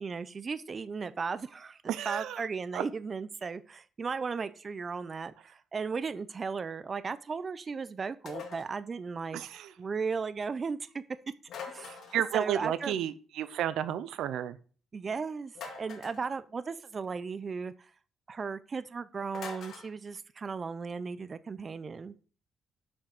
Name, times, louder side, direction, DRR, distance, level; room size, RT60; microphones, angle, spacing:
voice 1, 0.0-9.4 9.8-11.0 11.7-12.0 12.3-13.0 14.9-17.7 18.3-22.1, right 5 dB, 40° right, 14 dB, 0.6 m, -36 dB
voice 2, 1.9-2.4 2.7-2.8 9.3-9.7 11.9-14.6, right 10 dB, 80° right, 13 dB, 0.6 m, -32 dB
sound 1, 8.3-8.8 11.5-12.3 15.5-16.2 19.3-19.9, left 5 dB, 65° left, 2.1 m, -43 dB
6.4 x 5.9 x 6.6 m, 0.40 s
cardioid pair, 90°, 0 cm